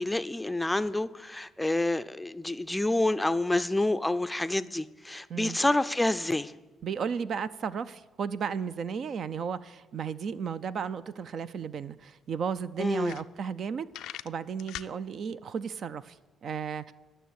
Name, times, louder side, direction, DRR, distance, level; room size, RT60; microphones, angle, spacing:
voice 1, 0.0-6.5 12.8-13.2, left 2 dB, 10° left, 13 dB, 0.4 m, -28 dB
voice 2, 6.8-16.9, right 6 dB, 60° right, 15 dB, 0.4 m, -34 dB
sound 1, 11.6-11.7 12.0-12.1 12.6-12.7 12.9-13.6 13.9-14.9, left 13 dB, 85° left, 0.3 m, -41 dB
12.0 x 6.5 x 8.1 m, 1.2 s
cardioid pair, 90°, 0 cm